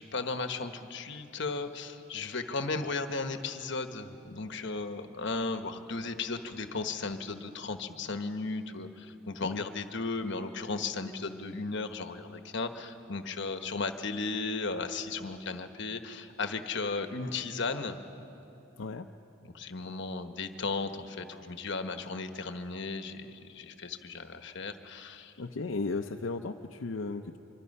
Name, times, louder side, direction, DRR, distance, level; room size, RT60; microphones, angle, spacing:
voice 1, 0.0-18.0 19.5-25.3, left 3 dB, 60° left, 8 dB, 1.2 m, -35 dB
voice 2, 25.4-27.4, left 3 dB, 75° left, 4 dB, 0.7 m, -35 dB
25.5 x 24.5 x 5.5 m, 3.0 s
head